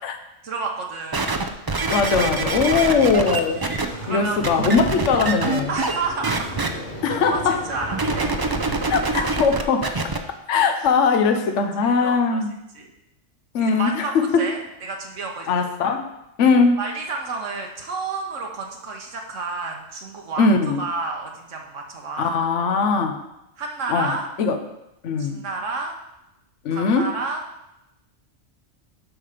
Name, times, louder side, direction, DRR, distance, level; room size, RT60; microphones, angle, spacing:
voice 1, 0.4-1.4 2.5-3.3 4.0-4.4 5.7-6.6 7.3-8.3 9.1-9.2 11.8-12.4 12.7-12.9 13.6-15.5 15.8-15.9 16.8-22.4 23.6-24.3 25.2-26.0 26.7-27.5, right 4 dB, 80° right, 1 dB, 1.3 m, -30 dB
sound 1, 1.1-3.9 4.4-6.0 6.2-6.7 7.9-10.2 10.9-11.0, right 3 dB, 35° right, 0.3 m, -24 dB
voice 2, 1.9-3.6 4.1-5.7 7.0-7.6 8.9-9.8 10.5-12.5 13.5-14.5 15.5-16.1 16.4-16.8 20.4-20.8 22.2-23.2 23.9-24.6 25.0-25.4 26.6-27.1, left 5 dB, 75° left, 6 dB, 1.1 m, -20 dB
sound 2, 2.4-9.0, right 1 dB, 55° left, 3.7 m, -36 dB
7.7 x 5.8 x 5.0 m, 0.88 s
omnidirectional pair, 1.3 m